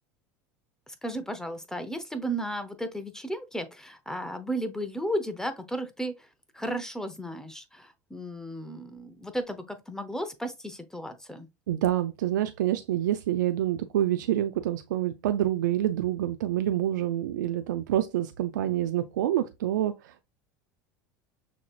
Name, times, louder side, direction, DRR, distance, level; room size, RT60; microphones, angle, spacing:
voice 1, 0.9-6.3 6.5-11.5, right 1 dB, 5° left, 0.8 m, -34 dB
voice 2, 11.7-20.3, right 12 dB, 85° right, 0.4 m, -27 dB
6.2 x 2.9 x 2.4 m
hypercardioid pair, 90°, 10 cm